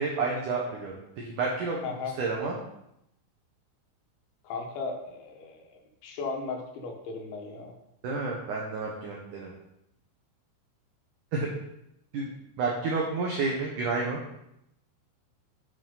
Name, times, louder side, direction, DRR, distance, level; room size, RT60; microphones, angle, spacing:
voice 1, 0.0-1.9 2.2-2.6 8.0-9.5 11.3-11.5 12.1-12.3 12.6-14.2, right 4 dB, 80° right, -2 dB, 1.8 m, -30 dB
voice 2, 1.8-2.1 4.4-7.7, left 4 dB, 80° left, 2 dB, 3.6 m, -36 dB
8.9 x 7.0 x 4.0 m, 0.81 s
omnidirectional pair, 5.3 m